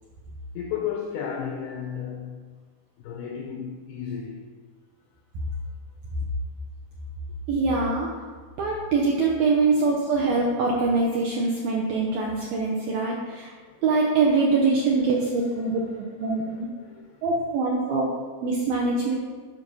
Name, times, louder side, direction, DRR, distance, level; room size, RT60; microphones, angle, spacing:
voice 1, 0.5-2.4 3.0-4.5 9.7-9.8 13.6-13.8 15.2-15.3 15.6-17.2, left 8 dB, 90° left, 2.3 m, -35 dB
voice 2, 7.5-8.1 8.6-13.5 13.8-15.8 16.2-16.7 17.2-18.1 18.4-19.1, right 3 dB, 85° right, 2.0 m, -23 dB
12.0 x 5.5 x 5.4 m
omnidirectional pair, 5.6 m